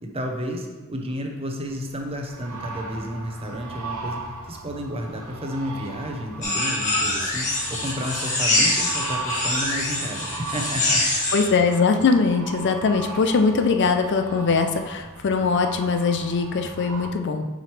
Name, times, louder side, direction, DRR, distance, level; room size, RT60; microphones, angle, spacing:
voice 1, 0.0-4.2 4.5-11.0, equal, 25° right, 2 dB, 0.8 m, -31 dB
sound 1, 1.6-17.1, right 3 dB, 85° right, 0.9 m, -37 dB
sound 2, 6.4-11.4, left 2 dB, 35° left, 1.5 m, -24 dB
voice 2, 11.3-17.5, left 4 dB, 55° left, 6 dB, 0.5 m, -21 dB
7.4 x 5.0 x 3.2 m, 1.3 s
head